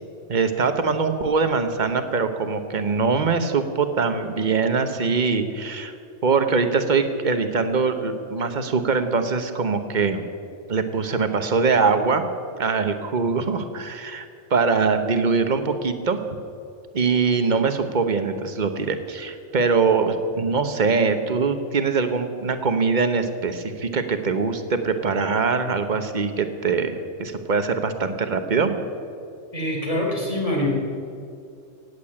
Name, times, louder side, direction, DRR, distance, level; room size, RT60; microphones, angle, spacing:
voice 1, 0.3-5.9 6.2-10.2 10.7-12.2 12.6-16.2 16.9-28.8, right 4 dB, 40° right, 8 dB, 1.1 m, -22 dB
voice 2, 29.5-30.7, left 1 dB, 30° left, -2 dB, 3.3 m, -24 dB
17.5 x 8.1 x 8.6 m, 2.4 s
omnidirectional pair, 1.2 m